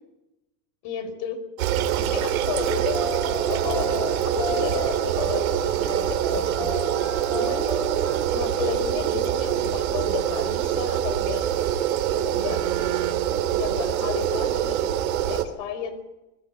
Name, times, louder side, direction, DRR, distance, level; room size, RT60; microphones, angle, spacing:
voice 1, 0.8-1.4 2.1-3.0 3.5-6.9 7.3-7.8 8.3-11.5 12.1-12.6 13.4-16.0, left 7 dB, 55° left, 8 dB, 4.8 m, -33 dB
sound 1, 1.6-15.4, right 11 dB, 85° right, 2.8 m, -25 dB
sound 2, 2.6-8.5, left 4 dB, 10° left, 3.0 m, -35 dB
20.5 x 14.5 x 9.4 m, 0.99 s
supercardioid pair, 135°, 40 cm